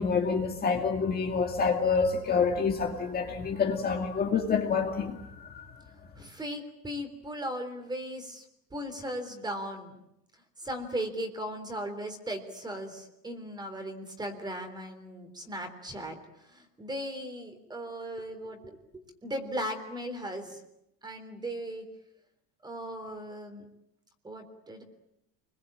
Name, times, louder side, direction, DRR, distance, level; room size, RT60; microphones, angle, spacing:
voice 1, 0.0-5.3, left 5 dB, 25° left, 2.3 m, -27 dB
voice 2, 6.1-8.5 8.7-10.0 10.6-20.6 21.0-21.9 22.6-23.6 24.2-24.8, equal, 10° right, 3.7 m, -37 dB
28.5 x 22.0 x 8.8 m
cardioid pair, 160°, 36 cm